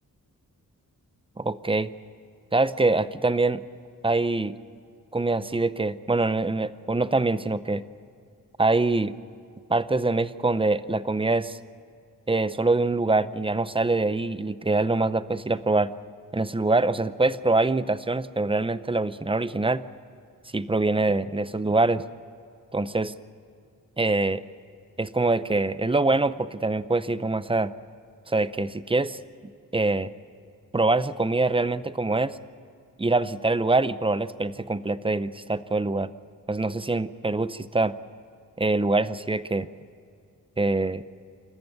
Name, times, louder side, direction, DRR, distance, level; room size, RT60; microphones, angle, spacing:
voice 1, 1.4-1.9 2.5-3.6 4.0-4.5 5.1-7.8 8.6-9.1 9.7-11.6 12.3-15.9 16.3-19.9 20.5-22.0 22.7-23.1 24.0-24.4 25.0-27.7 28.3-29.2 29.7-30.1 30.7-32.4 33.0-36.1 36.5-37.9 38.6-39.7 40.6-41.0, right 2 dB, 15° right, 15 dB, 0.6 m, -24 dB
27.0 x 14.5 x 9.3 m, 2.4 s
wide cardioid pair, 95°, 35 cm